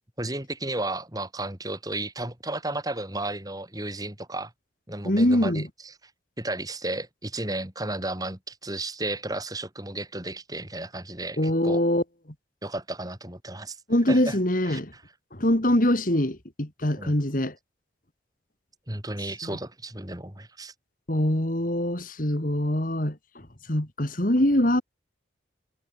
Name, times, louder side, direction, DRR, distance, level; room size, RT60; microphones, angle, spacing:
voice 1, 0.2-4.5 4.9-5.9 6.4-11.8 12.6-13.8 14.1-14.4 14.6-15.0 17.0-17.2 18.9-20.7, right 2 dB, 20° right, 3.9 m, -33 dB
voice 2, 5.0-5.7 11.4-12.0 13.9-14.9 15.4-17.5 21.1-23.2 23.7-24.8, left 1 dB, 45° left, 2.7 m, -23 dB
head